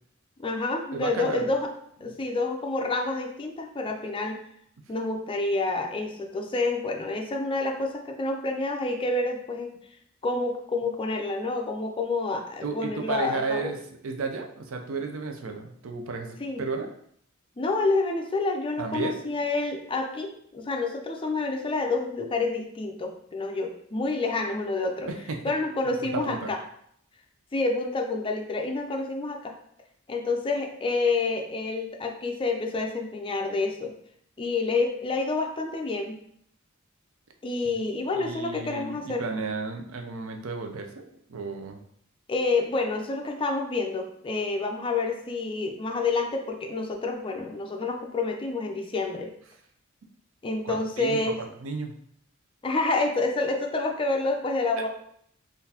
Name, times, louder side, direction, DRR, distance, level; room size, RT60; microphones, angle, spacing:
voice 1, 0.4-1.7 2.0-4.4 4.9-9.7 10.2-13.7 16.4-16.6 17.6-25.1 25.4-26.6 27.5-29.5 30.1-33.9 34.4-36.2 37.4-39.3 42.3-49.3 50.4-51.4 52.6-54.9, left 3 dB, 25° left, 3 dB, 0.4 m, -28 dB
voice 2, 0.9-1.5 12.6-16.9 18.8-19.4 25.1-25.4 25.9-26.5 38.1-41.8 50.6-51.9 54.8-54.9, right 4 dB, 75° right, 5 dB, 0.5 m, -33 dB
3.9 x 2.6 x 2.8 m, 0.67 s
head